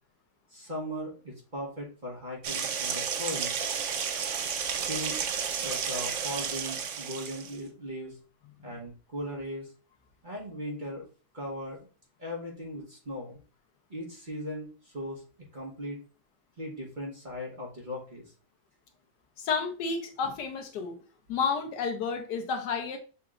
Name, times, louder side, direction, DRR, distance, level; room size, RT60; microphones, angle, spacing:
voice 1, 0.5-3.5 4.8-5.2 5.5-8.2 8.6-9.7 10.2-11.0 11.3-11.8 12.2-13.4 13.9-15.2 15.5-16.0 16.6-18.2, equal, 30° right, -3 dB, 1.1 m, -38 dB
sound 1, 2.4-7.5, right 7 dB, 65° right, 0.7 m, -32 dB
voice 2, 19.4-21.0 21.3-23.0, left 5 dB, 70° left, 5 dB, 1.2 m, -31 dB
6.8 x 2.9 x 2.4 m, 0.36 s
omnidirectional pair, 1.9 m